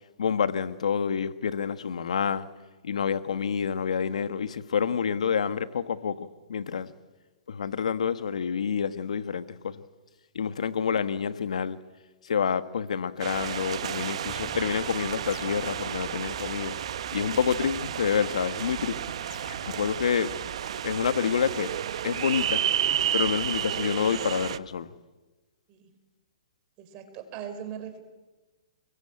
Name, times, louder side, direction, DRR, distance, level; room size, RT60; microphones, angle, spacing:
voice 1, 0.2-2.5 2.8-6.9 7.5-9.8 10.3-11.8 12.2-16.7 17.1-19.0 19.7-20.3 20.8-21.7 22.0-22.6 23.1-24.9, left 7 dB, 80° left, 1.5 m, -28 dB
sound 1, 13.2-24.6, right 10 dB, 60° right, 1.0 m, -31 dB
sound 2, 13.3-14.2 15.3-16.2 17.3-18.2 19.3-20.2, left 9 dB, 55° left, 1.9 m, -49 dB
Bass guitar, 14.3-20.5, left 5 dB, 25° left, 2.8 m, -51 dB
voice 2, 26.8-28.0, right 9 dB, 30° right, 4.7 m, -39 dB
29.0 x 21.5 x 8.9 m
hypercardioid pair, 155°, 4 cm